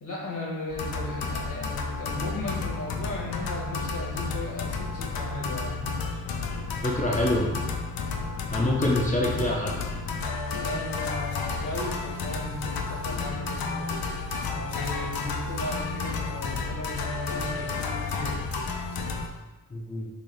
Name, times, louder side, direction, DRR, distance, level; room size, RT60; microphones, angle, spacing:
voice 1, 0.0-5.9 10.5-14.1 14.5-18.4, left 1 dB, 60° left, -4 dB, 0.9 m, -36 dB
sound 1, 0.7-19.3, left 4 dB, 80° left, 0.5 m, -31 dB
voice 2, 6.8-7.5 8.5-9.7 19.7-20.1, left 1 dB, 25° left, -2 dB, 0.4 m, -25 dB
3.2 x 2.4 x 3.8 m, 1.1 s
wide cardioid pair, 135°, 35 cm